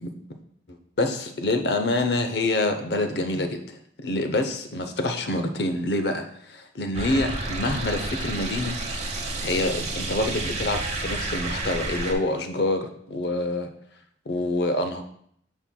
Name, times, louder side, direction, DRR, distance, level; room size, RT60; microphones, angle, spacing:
voice 1, 1.0-3.6 4.0-8.8 9.4-13.7 14.3-15.0, left 2 dB, 65° left, 6 dB, 0.7 m, -26 dB
sound 1, 6.9-12.1, right 2 dB, 40° right, 1.0 m, -30 dB
12.5 x 4.5 x 2.2 m, 0.67 s
head